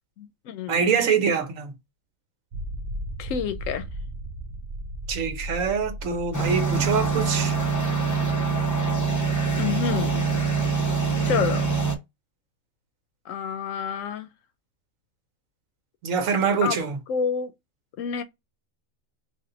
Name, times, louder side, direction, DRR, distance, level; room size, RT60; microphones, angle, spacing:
voice 1, 0.2-0.9 3.2-3.9 9.6-10.3 11.2-11.7 13.3-14.3 16.6-16.8 17.1-17.5 18.0-18.2, left 7 dB, 75° left, 0.9 m, -28 dB
voice 2, 0.7-1.7 5.1-7.6 16.0-17.0, right 6 dB, 75° right, 1.2 m, -24 dB
sound 1, 2.5-7.8, right 1 dB, 55° right, 0.9 m, -36 dB
sound 2, 6.3-11.9, right 5 dB, 25° left, 0.4 m, -24 dB
3.6 x 2.5 x 3.8 m
omnidirectional pair, 1.4 m